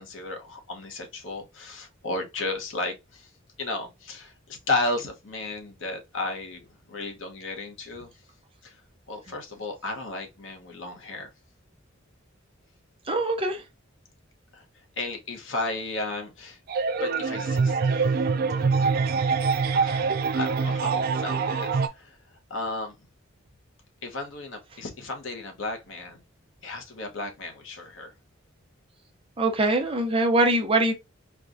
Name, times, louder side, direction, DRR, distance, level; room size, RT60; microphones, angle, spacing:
voice 1, 0.0-3.3 3.6-8.1 8.6-8.8 9.1-11.3 14.5-14.6 15.0-16.6 17.0-18.2 18.5-18.7 19.7-22.9 24.0-26.2 26.6-28.1, left 2 dB, 70° left, 1.0 m, -34 dB
voice 2, 13.1-13.6 29.4-30.9, right 2 dB, 25° right, 0.7 m, -23 dB
sound 1, 16.7-21.9, right 5 dB, 45° right, 0.3 m, -24 dB
4.3 x 2.3 x 2.5 m
head